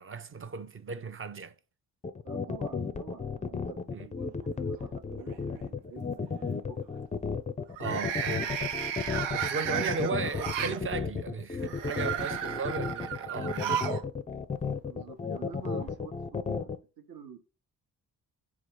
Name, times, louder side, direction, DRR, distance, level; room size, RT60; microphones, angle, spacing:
voice 1, 0.0-1.5 3.9-4.1 7.8-8.8 9.3-13.9, right 4 dB, 30° right, 0.6 m, -36 dB
sound 1, 2.0-16.8, left 5 dB, 20° left, 0.4 m, -33 dB
voice 2, 2.2-4.3 4.6-6.9 12.3-12.5 14.8-16.7 17.1-17.4, right 6 dB, 60° right, 1.0 m, -48 dB
sound 2, 4.2-4.8 5.2-5.6 7.7-10.8 11.6-14.0 14.3-14.4 15.5-15.6, right 9 dB, 85° right, 0.6 m, -34 dB
4.1 x 2.4 x 4.5 m
supercardioid pair, 45°, 42 cm